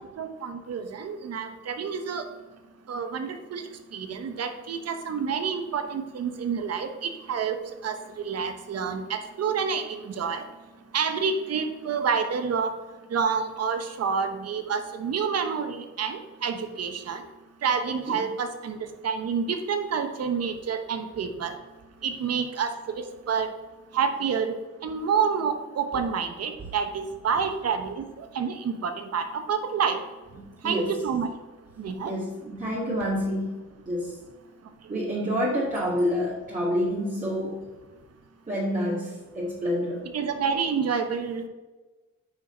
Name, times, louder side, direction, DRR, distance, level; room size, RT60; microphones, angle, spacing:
voice 1, 0.2-2.3 2.9-3.6 3.9-7.6 7.8-10.4 10.9-12.7 13.1-17.2 17.6-18.8 19.0-21.6 22.0-23.5 23.9-24.5 24.8-30.0 30.6-31.3 31.8-32.1 40.1-41.5, right 6 dB, 55° right, 7 dB, 1.1 m, -28 dB
voice 2, 31.9-33.6 33.8-34.1 34.9-37.6 38.5-40.0, equal, 25° right, -8 dB, 2.5 m, -28 dB
9.7 x 5.1 x 4.0 m, 1.2 s
cardioid pair, 90°, 30 cm